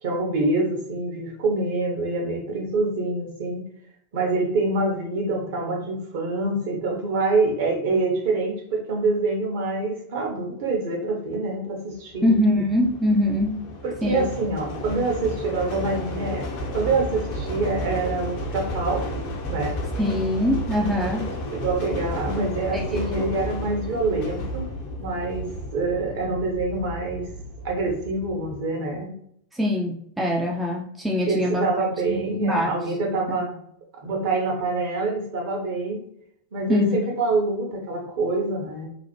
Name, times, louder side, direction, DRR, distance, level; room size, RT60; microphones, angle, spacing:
voice 1, 0.0-3.6 4.1-12.3 13.8-16.5 16.7-19.1 19.5-19.7 21.2-24.7 25.0-27.3 27.6-29.1 31.3-33.6 34.0-36.0 36.5-38.9, right 3 dB, 50° right, 1 dB, 0.9 m, -26 dB
sound 1, 12.1-28.6, equal, 45° left, 0.6 m, -32 dB
voice 2, 12.2-13.6 14.0-14.3 20.0-21.3 22.7-23.2 29.5-32.7 33.3-33.4 36.7-37.0, left 1 dB, 10° right, -2 dB, 0.4 m, -23 dB
2.9 x 2.1 x 2.9 m, 0.70 s
figure-of-eight pair, 90°, 0 cm